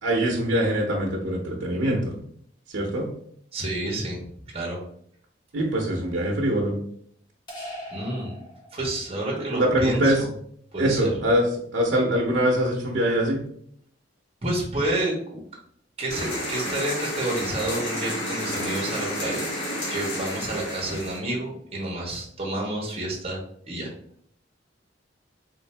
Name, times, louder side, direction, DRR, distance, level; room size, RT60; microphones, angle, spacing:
voice 1, 0.0-2.1 2.7-3.1 5.5-6.8 9.6-10.2 10.8-11.5 11.7-13.4, right 1 dB, 85° right, -2 dB, 0.8 m, -23 dB
voice 2, 3.5-4.2 4.5-4.8 7.9-8.3 8.7-10.3 10.7-11.1 14.4-15.4 16.0-23.4 23.6-23.9, right 1 dB, 35° right, -3 dB, 1.1 m, -29 dB
sound 1, 7.5-9.1, left 1 dB, 25° left, 1.4 m, -40 dB
sound 2, 16.1-21.2, left 1 dB, 90° left, 1.6 m, -31 dB
3.8 x 2.7 x 3.3 m, 0.65 s
head